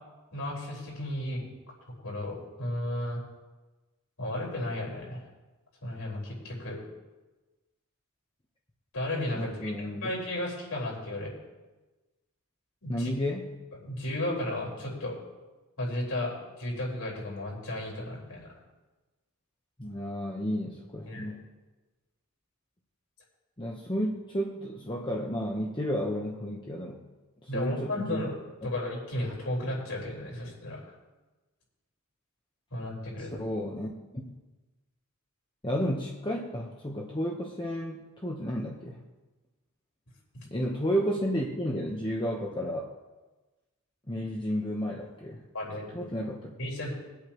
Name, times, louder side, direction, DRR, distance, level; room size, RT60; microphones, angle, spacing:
voice 1, 0.3-1.5 2.0-3.2 4.2-5.2 5.8-6.8 8.9-11.3 12.8-13.1 13.8-15.1 15.8-16.3 16.6-18.5 21.1-21.3 27.5-28.4 28.6-30.8 32.7-33.4 45.5-46.0 46.6-46.9, left 1 dB, 80° left, -4 dB, 4.9 m, -34 dB
voice 2, 9.3-10.1 12.9-13.5 19.8-21.4 23.6-27.0 27.4-28.2 33.2-34.3 35.6-39.0 40.5-42.9 44.1-45.4 45.9-46.6, equal, 20° left, -1 dB, 1.1 m, -32 dB
24.5 x 8.3 x 3.1 m, 1.2 s
head